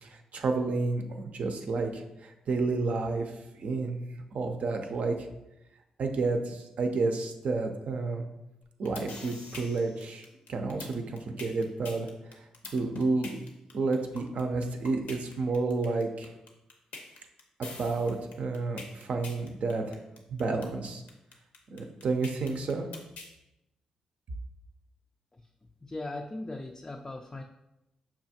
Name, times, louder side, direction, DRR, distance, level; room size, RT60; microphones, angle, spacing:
voice 1, 0.0-3.3 3.6-5.1 6.0-8.2 8.8-12.1 12.7-13.3 13.7-16.3 17.6-20.0 20.3-21.0 21.7-22.9, right 3 dB, 65° right, 4 dB, 0.5 m, -30 dB
sound 1, 8.6-23.3, left 3 dB, 75° left, 0.7 m, -45 dB
voice 2, 25.8-27.4, left 2 dB, 25° left, 3 dB, 0.3 m, -39 dB
5.7 x 2.4 x 2.7 m, 0.94 s
hypercardioid pair, 40°, 2 cm